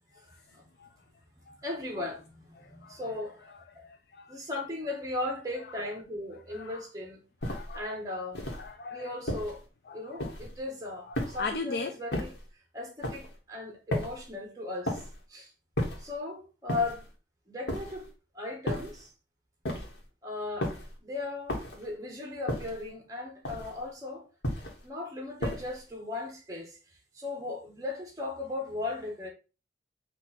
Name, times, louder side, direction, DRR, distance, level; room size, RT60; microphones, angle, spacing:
voice 1, 1.6-3.9 4.3-7.2 7.7-8.4 8.9-9.6 9.9-12.3 12.7-15.0 15.3-15.5 16.0-17.0 17.5-18.1 18.3-19.1 20.2-20.7 21.0-24.2 24.8-26.8 27.1-29.3, left 2 dB, 20° right, 1.2 m, -37 dB
voice 2, 2.6-3.0 3.8-4.4 6.5-6.8 7.4-7.9 8.5-9.1 9.9-10.3 11.1-12.0, left 4 dB, 60° left, 0.4 m, -39 dB
sound 1, 7.4-7.8 8.3-8.7 9.3-9.6 10.2-10.6 11.1-11.6 12.1-12.5 13.0-13.4 13.9-14.3 14.9-15.2 15.8-16.1 16.7-17.1 17.7-18.1 18.7-19.0 19.6-20.1 20.6-21.0 21.5-21.9 22.5-22.9 23.4-23.8 24.4-24.8 25.4-25.8, left 1 dB, 85° left, 1.4 m, -34 dB
4.6 x 2.6 x 4.2 m
head